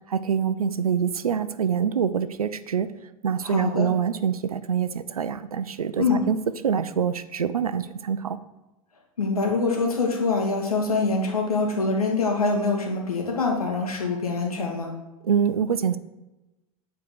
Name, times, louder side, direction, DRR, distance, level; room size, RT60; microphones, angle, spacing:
voice 1, 0.1-2.9 3.2-6.4 6.6-8.4 15.2-16.0, right 7 dB, 85° right, 13 dB, 0.6 m, -25 dB
voice 2, 3.4-3.9 6.0-6.2 9.2-15.0, left 3 dB, 90° left, 1 dB, 2.2 m, -24 dB
9.4 x 4.6 x 6.7 m, 1.0 s
hypercardioid pair, 90°, 18 cm